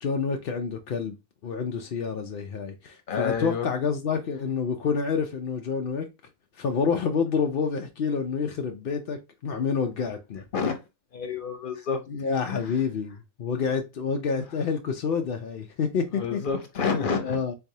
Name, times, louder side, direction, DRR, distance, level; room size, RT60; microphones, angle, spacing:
voice 1, 0.0-1.1 1.4-6.1 6.6-10.4 12.1-16.4 17.2-17.5, left 5 dB, 65° left, 0.5 m, -28 dB
voice 2, 3.1-3.7 10.5-10.8 11.1-12.0 12.5-12.7 16.1-17.4, left 5 dB, 40° left, 0.8 m, -29 dB
4.0 x 3.4 x 2.7 m
omnidirectional pair, 1.6 m